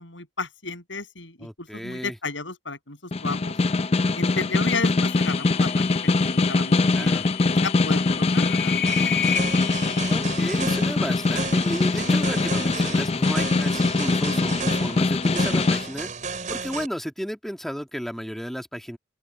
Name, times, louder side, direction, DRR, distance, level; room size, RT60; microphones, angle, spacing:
voice 1, 0.0-3.6 4.2-5.9 6.2-7.2 7.6-9.2, left 3 dB, 85° left, 7.4 m, -33 dB
voice 2, 1.4-2.2 6.9-7.3 10.0-16.1 16.5-19.0, equal, ahead, 1.7 m, -33 dB
Snare drum, 3.1-15.9, left 3 dB, 35° left, 0.5 m, -22 dB
sound 1, 5.1-10.2, left 10 dB, 60° left, 3.5 m, -32 dB
sound 2, 8.9-16.9, right 5 dB, 40° right, 5.6 m, -34 dB
open air
head